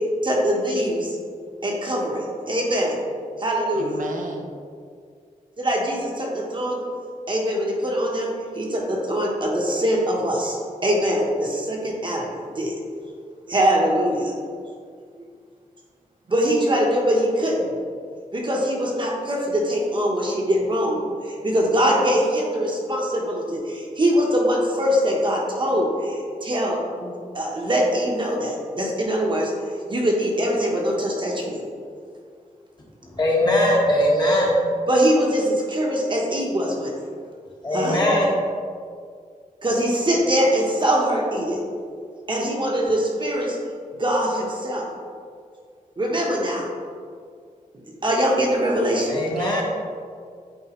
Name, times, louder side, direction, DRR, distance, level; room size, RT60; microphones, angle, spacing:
voice 1, 0.2-1.1 1.6-3.0 3.4-3.9 5.6-6.8 7.3-8.3 8.6-12.3 12.5-12.8 13.5-14.3 16.3-17.7 18.3-21.0 21.4-29.5 29.9-31.6 34.9-36.9 37.7-38.0 39.6-41.6 42.3-43.6 44.0-44.8 46.0-46.6 48.0-49.2, equal, 35° right, -2 dB, 1.1 m, -22 dB
voice 2, 3.7-4.5 49.2-49.6, right 2 dB, 65° right, 0 dB, 0.7 m, -33 dB
voice 3, 33.0-34.6 37.6-38.3 49.1-49.6, left 1 dB, 30° left, -4 dB, 1.3 m, -20 dB
8.9 x 4.6 x 3.1 m, 2.2 s
wide cardioid pair, 155°, 14 cm